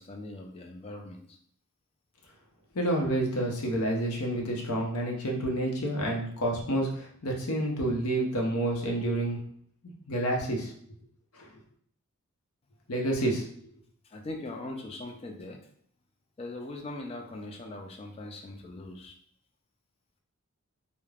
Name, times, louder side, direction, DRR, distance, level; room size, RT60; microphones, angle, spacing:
voice 1, 0.0-1.4 14.0-15.6 16.4-19.2, left 2 dB, 25° left, 2 dB, 0.3 m, -41 dB
voice 2, 2.7-9.4 10.1-10.7 11.3-11.5 12.9-13.4, right 1 dB, 80° left, 0 dB, 0.7 m, -29 dB
3.2 x 2.1 x 2.3 m, 0.63 s
head